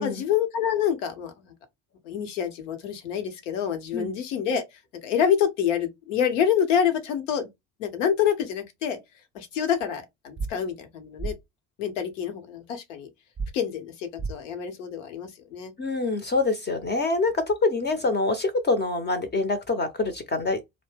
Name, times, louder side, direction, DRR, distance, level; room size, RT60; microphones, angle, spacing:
voice 1, 0.0-1.5 2.0-4.6 5.0-7.5 7.8-9.0 9.3-11.3 11.8-13.1 13.5-15.7, left 8 dB, 75° left, 0.8 m, -27 dB
sound 1, 10.4-10.5 11.2-11.3 13.4-13.5 14.2-14.3, right 4 dB, 15° right, 0.3 m, -30 dB
voice 2, 15.8-20.6, left 3 dB, 25° left, 0.6 m, -25 dB
2.7 x 2.0 x 3.2 m
hypercardioid pair, 60°, 38 cm